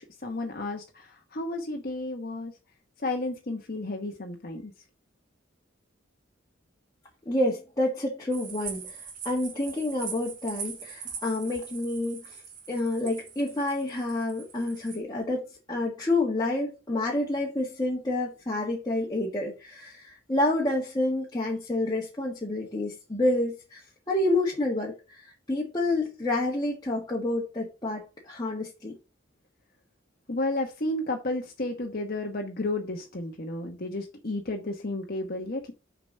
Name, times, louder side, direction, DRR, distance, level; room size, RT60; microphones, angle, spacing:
voice 1, 0.0-2.5 3.0-4.7 30.3-35.7, left 2 dB, 50° left, 1.1 m, -32 dB
voice 2, 7.2-12.4 12.7-23.8 24.1-29.0, left 2 dB, 20° left, 1.6 m, -29 dB
sound 1, 8.3-15.0, right 6 dB, 45° right, 3.0 m, -42 dB
6.7 x 4.9 x 6.5 m
head